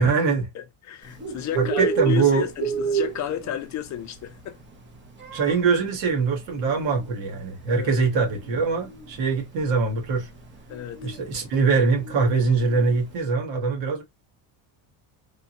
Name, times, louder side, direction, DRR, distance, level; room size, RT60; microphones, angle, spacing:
voice 1, 0.0-0.5 1.5-2.5 5.3-10.3 11.0-14.0, right 4 dB, 75° right, 1.4 m, -23 dB
voice 2, 0.5-4.6 7.7-7.9 10.7-11.0, left 11 dB, 40° left, 0.5 m, -32 dB
Bird, 1.0-13.2, right 7 dB, 25° right, 0.7 m, -33 dB
3.5 x 2.2 x 2.8 m
cardioid pair, 155°, 44 cm